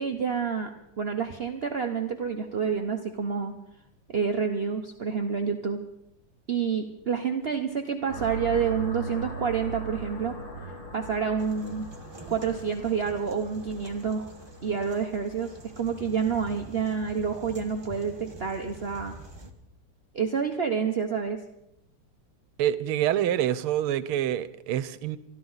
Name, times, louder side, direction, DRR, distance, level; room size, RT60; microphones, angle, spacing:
voice 1, 0.0-3.5 4.1-5.8 6.5-10.4 10.9-11.9 12.3-14.3 14.6-19.2 20.1-21.4, right 6 dB, 60° right, 4 dB, 0.6 m, -28 dB
sound 1, 8.1-17.6, right 2 dB, 60° left, 3.6 m, -40 dB
sound 2, 11.4-19.5, right 1 dB, 20° right, 0.8 m, -47 dB
voice 2, 22.6-25.2, right 11 dB, 80° right, 15 dB, 1.6 m, -26 dB
27.0 x 12.0 x 4.0 m, 0.81 s
omnidirectional pair, 2.4 m